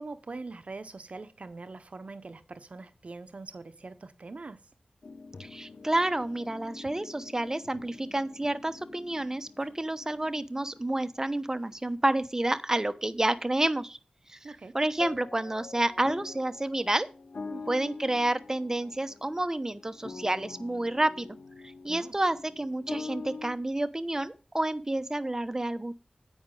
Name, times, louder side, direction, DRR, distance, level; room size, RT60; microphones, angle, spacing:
voice 1, 0.0-4.7 14.4-14.8 17.5-17.8 21.9-22.2, right 3 dB, 60° right, 0.9 m, -43 dB
sound 1, 5.0-11.3 15.0-23.6, left 4 dB, 80° left, 1.1 m, -45 dB
voice 2, 5.4-14.0 14.3-17.1 17.7-21.3 21.6-25.9, right 1 dB, 20° right, 1.0 m, -29 dB
10.0 x 8.8 x 3.9 m
wide cardioid pair, 70°, 3 cm